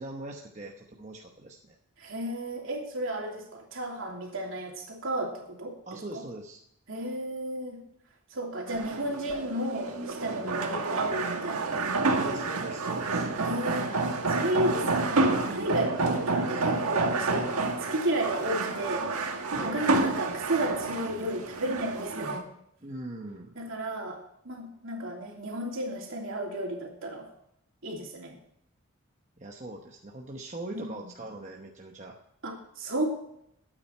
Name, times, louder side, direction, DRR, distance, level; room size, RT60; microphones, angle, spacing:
voice 1, 0.0-1.8 5.9-6.6 12.2-13.3 19.5-19.8 22.8-23.5 29.4-32.2, right 1 dB, 30° right, 1 dB, 1.0 m, -41 dB
voice 2, 2.0-5.7 6.1-6.2 6.9-7.8 8.3-11.7 12.2-12.5 13.4-22.4 23.5-24.2 24.4-27.3 27.8-28.4 30.7-30.9 32.4-33.1, right 1 dB, 65° right, 0 dB, 3.0 m, -33 dB
sound 1, 8.7-22.4, right 3 dB, 85° right, 1.6 m, -29 dB
13.5 x 8.9 x 4.5 m, 0.74 s
head